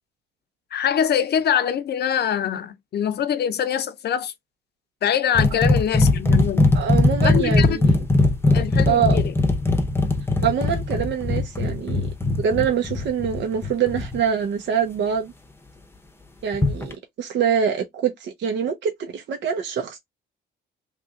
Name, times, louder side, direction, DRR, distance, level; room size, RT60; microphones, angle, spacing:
voice 1, 0.7-4.3 5.0-6.8 7.2-7.8 8.5-9.2, left 9 dB, 55° left, 0.6 m, -24 dB
sound 1, 5.3-14.2 16.5-16.9, left 2 dB, 10° left, 0.8 m, -20 dB
voice 2, 6.7-7.9 8.5-8.6 8.9-9.2 10.4-12.1 12.4-15.3 16.4-20.0, right 7 dB, 65° right, 0.7 m, -24 dB
3.0 x 2.5 x 3.6 m
cardioid pair, 90°, 20 cm